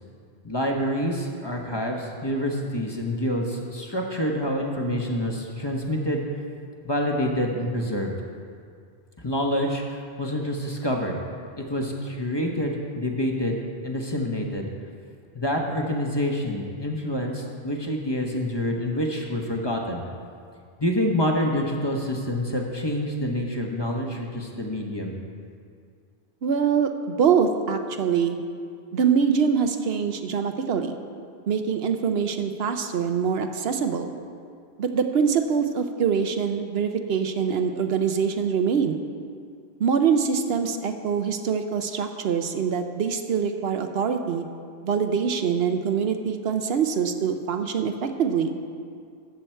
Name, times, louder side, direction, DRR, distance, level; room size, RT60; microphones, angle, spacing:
voice 1, 0.4-6.2 6.8-8.1 9.2-11.1 11.6-13.6 13.8-14.7 15.3-20.0 20.8-25.1, equal, 25° left, 0 dB, 1.0 m, -27 dB
voice 2, 26.4-28.4 28.9-31.0 31.5-34.1 34.8-39.0 39.8-44.4 44.8-48.6, right 6 dB, 75° right, 7 dB, 0.9 m, -24 dB
13.5 x 7.8 x 4.5 m, 2.2 s
omnidirectional pair, 1.1 m